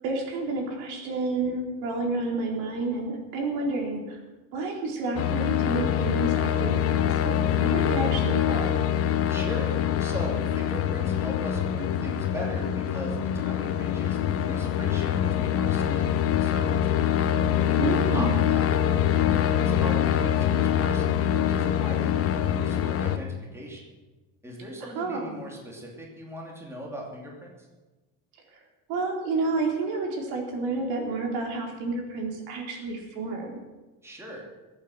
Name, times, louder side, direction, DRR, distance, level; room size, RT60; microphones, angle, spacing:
voice 1, 0.0-4.2 4.5-8.8 17.8-18.4 24.8-25.4 28.5-28.6 28.9-33.6, right 3 dB, 65° right, 1 dB, 4.0 m, -30 dB
sound 1, 5.2-23.2, left 10 dB, 35° left, 0.9 m, -24 dB
voice 2, 9.3-9.7 10.0-17.0 17.6-18.7 19.1-23.8 24.4-27.7 34.0-34.5, equal, 5° right, -2 dB, 2.7 m, -39 dB
23.0 x 8.8 x 6.4 m, 1.2 s
cardioid pair, 160°, 39 cm